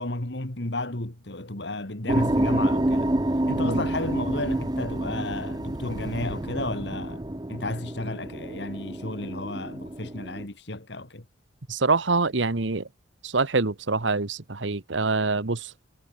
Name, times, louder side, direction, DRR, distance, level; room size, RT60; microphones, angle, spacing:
voice 1, 0.0-7.2 7.5-11.2, left 2 dB, 60° left, 2.5 m, -33 dB
sound 1, 2.1-10.4, right 1 dB, 20° right, 0.8 m, -28 dB
voice 2, 11.7-12.9 13.2-15.7, right 3 dB, 75° right, 1.3 m, -25 dB
head